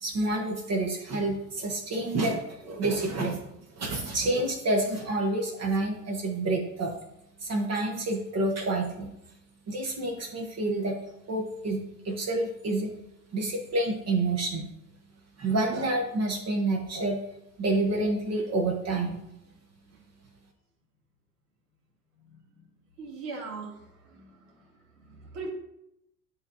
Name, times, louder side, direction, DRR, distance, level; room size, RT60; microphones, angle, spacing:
voice 1, 0.0-3.4 3.7-6.9 7.4-9.1 9.7-11.0 11.3-11.8 12.0-12.9 13.3-14.7 15.4-17.2 17.6-19.2, right 2 dB, 30° right, 1 dB, 1.2 m, -28 dB
voice 2, 23.0-24.7 25.0-25.5, right 4 dB, 65° right, -2 dB, 2.4 m, -40 dB
10.0 x 3.4 x 2.8 m, 0.84 s
hypercardioid pair, 80°, 49 cm